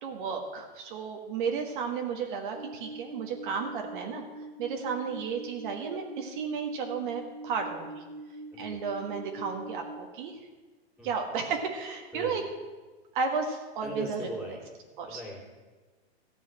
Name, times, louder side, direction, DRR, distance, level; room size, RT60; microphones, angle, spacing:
voice 1, 0.0-4.2 4.6-8.0 8.6-10.4 11.0-12.4 13.1-14.3 15.0-15.2, right 5 dB, 50° right, 2 dB, 1.6 m, -33 dB
sound 1, 2.5-10.0, right 2 dB, 85° right, 1.9 m, -43 dB
voice 2, 8.5-8.8 11.0-11.1 12.1-12.4 13.8-14.7 15.0-15.4, equal, ahead, -2 dB, 3.2 m, -39 dB
14.5 x 5.5 x 9.7 m, 1.3 s
hypercardioid pair, 145°, 32 cm